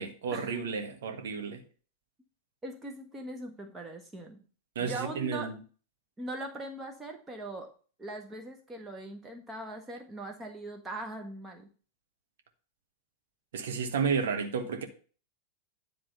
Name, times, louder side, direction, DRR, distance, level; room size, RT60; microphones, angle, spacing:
voice 1, 0.0-1.6 4.7-5.5 13.5-14.8, right 5 dB, 60° right, 1.5 m, -32 dB
voice 2, 2.6-4.4 4.8-5.5 6.2-7.7 8.0-11.7, right 2 dB, 15° right, 1.5 m, -40 dB
10.5 x 3.7 x 6.9 m
figure-of-eight pair, 90°, 0 cm